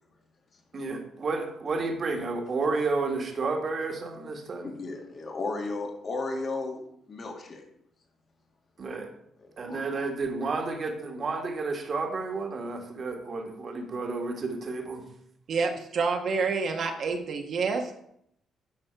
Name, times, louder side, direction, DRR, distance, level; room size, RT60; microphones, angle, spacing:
voice 1, 0.7-4.7 8.8-9.1 9.6-15.0, right 3 dB, 45° right, 3 dB, 1.6 m, -31 dB
voice 2, 4.6-6.8 7.1-7.6 9.6-9.8, left 3 dB, 45° left, 2 dB, 1.8 m, -34 dB
voice 3, 15.5-18.0, right 4 dB, 60° right, 4 dB, 1.1 m, -28 dB
10.5 x 4.4 x 4.6 m, 0.73 s
cardioid pair, 90°, 0 cm